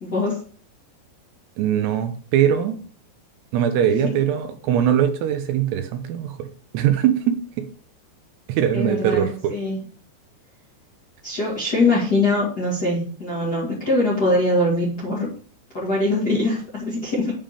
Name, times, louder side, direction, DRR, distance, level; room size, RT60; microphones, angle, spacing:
voice 1, 0.0-0.4 3.9-4.1 8.7-9.8 11.2-15.3 15.7-17.3, left 2 dB, 40° left, -5 dB, 1.4 m, -22 dB
voice 2, 1.6-2.8 3.5-7.7 8.5-9.5, right 9 dB, 80° right, 8 dB, 2.6 m, -21 dB
8.9 x 3.7 x 6.5 m, 0.43 s
omnidirectional pair, 5.1 m